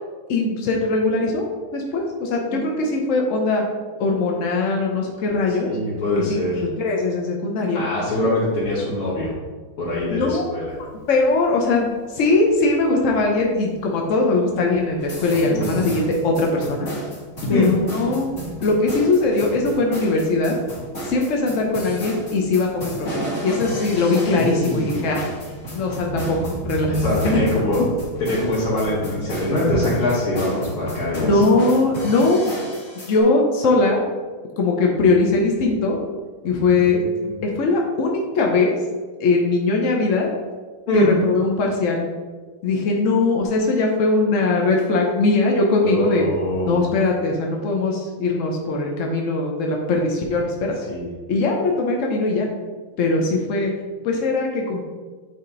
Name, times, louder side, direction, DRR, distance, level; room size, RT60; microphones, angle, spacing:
voice 1, 0.3-3.6 4.0-5.7 6.3-6.4 6.8-7.8 10.1-10.4 11.1-16.9 17.5-18.3 18.6-20.6 21.1-25.3 25.7-27.0 27.2-27.4 31.2-32.4 33.1-34.0 34.6-36.0 36.4-37.0 37.4-38.7 39.2-40.3 40.9-42.1 42.6-46.3 46.7-50.7 51.3-52.5 53.0-53.7 54.0-54.8, left 3 dB, 65° left, 0 dB, 0.8 m, -20 dB
voice 2, 5.6-6.6 7.7-9.3 9.8-10.7 15.4-15.9 17.5-17.7 23.9-25.2 26.9-27.9 28.2-31.4 36.4-37.3 40.9-41.1 45.8-46.8 50.9-51.1, left 1 dB, 85° left, -10 dB, 2.7 m, -24 dB
Thunder, 10.7-30.0, right 1 dB, 30° right, 0.3 m, -36 dB
sound 1, 15.0-33.2, right 1 dB, 35° left, 1.8 m, -33 dB
8.9 x 3.6 x 3.9 m, 1.4 s
omnidirectional pair, 2.3 m